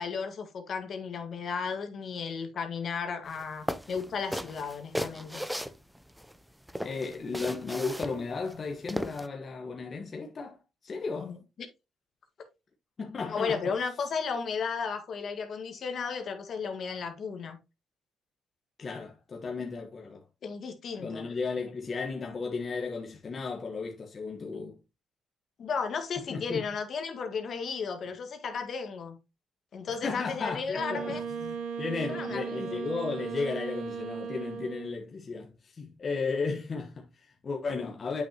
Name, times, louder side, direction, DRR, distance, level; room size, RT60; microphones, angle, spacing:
voice 1, 0.0-5.5 11.2-11.7 13.3-17.6 20.4-21.3 24.5-24.6 25.6-29.2 29.7-31.2 32.1-32.8, left 5 dB, 60° left, 1.7 m, -34 dB
sound 1, 3.3-3.4 3.7-6.3 6.7-9.3, equal, ahead, 0.6 m, -36 dB
voice 2, 6.8-11.4 13.0-13.6 18.8-20.2 21.0-24.8 26.3-26.6 30.0-38.2, left 4 dB, 40° left, 1.3 m, -34 dB
Wind instrument woodwind instrument, 30.7-35.1, right 6 dB, 90° right, 1.7 m, -37 dB
8.3 x 5.9 x 2.9 m
cardioid pair, 90°, 0 cm